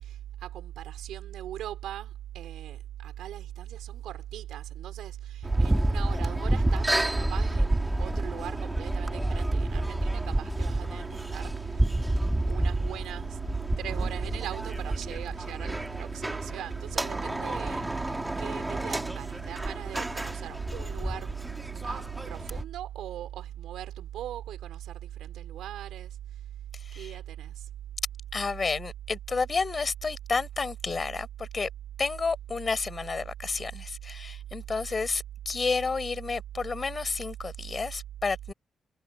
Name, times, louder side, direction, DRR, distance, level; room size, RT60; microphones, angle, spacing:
voice 1, 0.0-12.0 12.5-13.4 13.8-17.8 18.4-21.3 21.8-26.2 26.9-27.7, right 12 dB, 80° right, 4.7 m, -39 dB
sound 1, 5.4-22.6, right 1 dB, 15° right, 3.3 m, -29 dB
voice 2, 28.3-31.7 32.0-38.5, left 4 dB, 40° left, 5.5 m, -31 dB
supercardioid pair, 50°, 0 cm